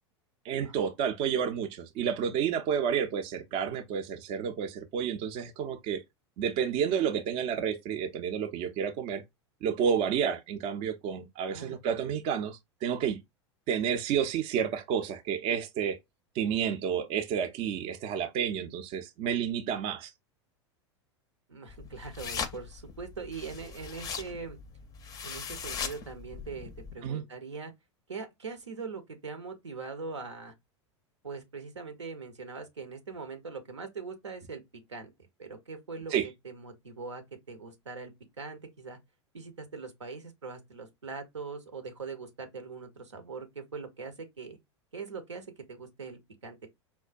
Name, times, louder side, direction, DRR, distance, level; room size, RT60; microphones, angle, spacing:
voice 1, 0.4-6.0 6.4-9.2 9.6-13.2 13.7-16.0 16.3-20.1 27.0-27.2 36.1-36.3, right 8 dB, 40° right, 0.5 m, -30 dB
voice 2, 11.5-11.8 21.5-24.6 25.2-27.7 28.1-30.5 31.2-34.6 34.9-35.1 35.4-39.0 39.3-44.6 44.9-46.7, right 4 dB, 80° right, 0.8 m, -42 dB
sound 1, 21.7-27.0, left 6 dB, 25° left, 0.5 m, -40 dB
4.4 x 2.1 x 2.4 m
figure-of-eight pair, 85°, 15 cm